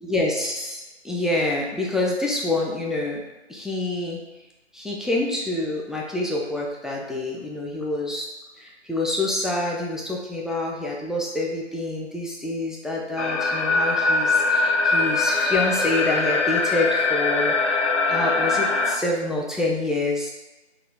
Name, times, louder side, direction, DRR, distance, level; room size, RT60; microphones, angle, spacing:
voice 1, 0.0-3.2 3.5-4.2 4.7-8.3 8.5-20.3, left 2 dB, ahead, -3 dB, 0.3 m, -27 dB
sound 1, 13.2-19.0, left 3 dB, 85° left, 0.5 m, -22 dB
3.6 x 2.2 x 3.4 m, 1.1 s
figure-of-eight pair, 175°, 35 cm